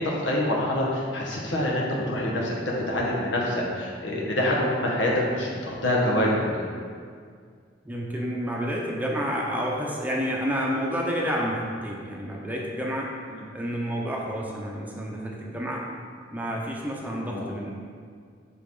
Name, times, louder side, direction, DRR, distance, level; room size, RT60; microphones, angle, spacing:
voice 1, 0.0-2.5 2.9-6.3 13.3-13.4 17.3-17.4, left 1 dB, 70° left, -3 dB, 1.5 m, -26 dB
voice 2, 7.8-13.1 13.5-15.9 16.3-17.7, equal, 10° right, -2 dB, 0.8 m, -29 dB
7.0 x 6.1 x 3.8 m, 2.1 s
head